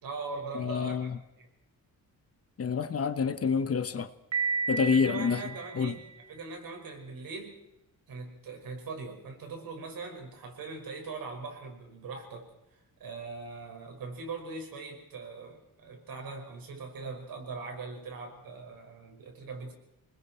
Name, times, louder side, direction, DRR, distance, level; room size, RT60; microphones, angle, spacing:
voice 1, 0.0-1.1 1.4-1.5 4.7-7.6 8.1-12.5 13.0-19.7, right 4 dB, 75° right, 2 dB, 5.7 m, -41 dB
voice 2, 0.5-1.2 2.6-4.1 4.7-5.4 5.7-6.0, left 6 dB, 40° left, 11 dB, 1.1 m, -28 dB
Piano, 4.3-6.3, right 5 dB, 50° right, 2.9 m, -33 dB
29.5 x 20.5 x 4.4 m, 0.89 s
wide cardioid pair, 165°, 35 cm